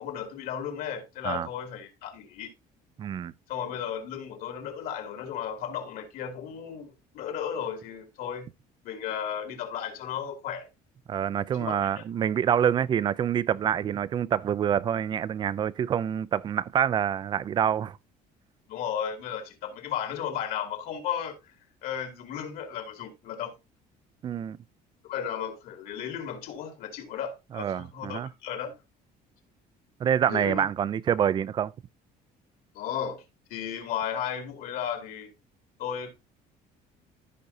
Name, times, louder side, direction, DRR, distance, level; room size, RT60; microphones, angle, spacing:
voice 1, 0.0-2.5 3.5-8.5 8.8-10.7 11.5-12.0 18.7-21.6 21.8-23.5 25.0-28.7 30.3-30.7 32.7-33.2 33.5-35.3 35.8-36.1, left 8 dB, 65° left, 2.6 m, -34 dB
voice 2, 3.0-3.3 11.1-18.0 24.2-24.6 27.5-28.3 30.0-31.7, right 9 dB, 30° right, 0.4 m, -26 dB
15.0 x 5.4 x 2.7 m
cardioid pair, 170°, 16 cm